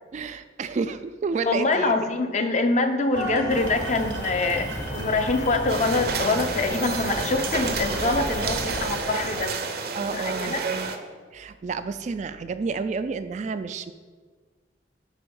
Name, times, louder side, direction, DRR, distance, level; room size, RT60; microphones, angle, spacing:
voice 1, 0.1-1.9 9.9-11.0 11.3-13.9, right 4 dB, 40° right, 11 dB, 0.3 m, -30 dB
voice 2, 1.4-9.5 10.0-10.6, left 3 dB, 40° left, 7 dB, 0.6 m, -25 dB
sound 1, 3.1-9.5, right 2 dB, 75° right, 1.0 m, -36 dB
sound 2, 3.5-8.8, left 1 dB, 75° left, 1.7 m, -35 dB
sound 3, 5.7-11.0, right 4 dB, 55° right, 0.7 m, -30 dB
9.1 x 4.2 x 5.4 m, 1.5 s
head